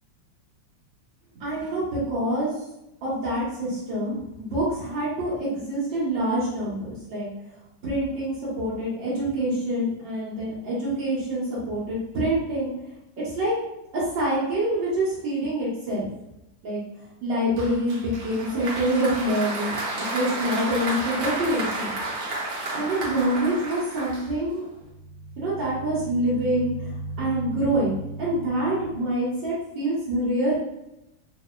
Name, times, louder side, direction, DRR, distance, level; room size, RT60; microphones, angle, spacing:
voice 1, 1.4-2.5 3.0-7.3 7.8-12.7 13.2-13.5 13.9-16.1 16.6-16.8 17.2-19.8 20.1-21.9 22.7-24.6 25.4-30.5, right 1 dB, 75° right, -8 dB, 1.9 m, -26 dB
Applause, 17.6-24.7, right 2 dB, 55° right, 1.1 m, -31 dB
sound 1, 24.7-29.4, right 2 dB, 75° left, 0.5 m, -37 dB
4.1 x 2.7 x 2.3 m, 0.88 s
omnidirectional pair, 2.1 m